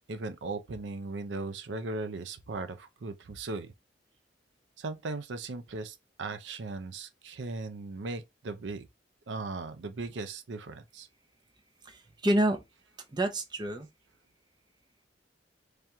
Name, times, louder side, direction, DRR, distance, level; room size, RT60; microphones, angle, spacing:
voice 1, 0.1-3.7 4.8-8.9 9.3-11.1, right 3 dB, 75° right, 0.5 m, -38 dB
voice 2, 11.8-12.6 13.1-13.9, right 1 dB, 25° right, 0.6 m, -28 dB
3.3 x 2.9 x 3.5 m
head